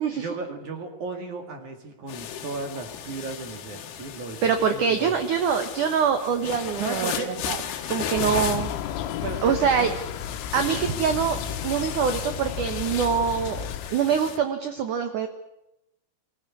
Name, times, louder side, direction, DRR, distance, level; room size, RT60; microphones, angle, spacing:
voice 1, 0.1-5.1 6.8-7.4 9.2-9.9 10.5-10.6, right 3 dB, 50° right, 5 dB, 3.0 m, -35 dB
sound 1, 2.1-14.4, left 9 dB, 65° left, 3.4 m, -36 dB
voice 2, 4.4-7.1 7.5-7.6 7.9-8.7 9.4-9.9 10.5-15.3, right 7 dB, 70° right, 7 dB, 1.9 m, -24 dB
sound 2, 8.1-13.9, left 9 dB, 80° left, 3.7 m, -33 dB
24.0 x 17.0 x 9.7 m, 0.89 s
omnidirectional pair, 5.6 m